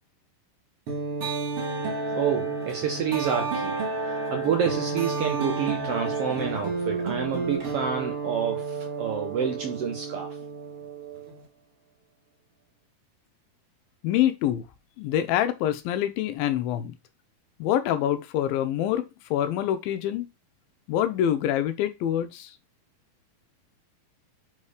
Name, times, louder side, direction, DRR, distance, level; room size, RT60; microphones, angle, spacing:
sound 1, 0.9-11.4, right 4 dB, 45° right, 2.5 m, -31 dB
voice 1, 2.1-3.8 4.1-10.4, right 7 dB, 90° right, 1.3 m, -28 dB
voice 2, 14.0-14.6 15.0-16.9 17.6-20.3 20.9-22.5, left 11 dB, 85° left, 2.6 m, -26 dB
5.7 x 4.3 x 4.9 m
omnidirectional pair, 4.1 m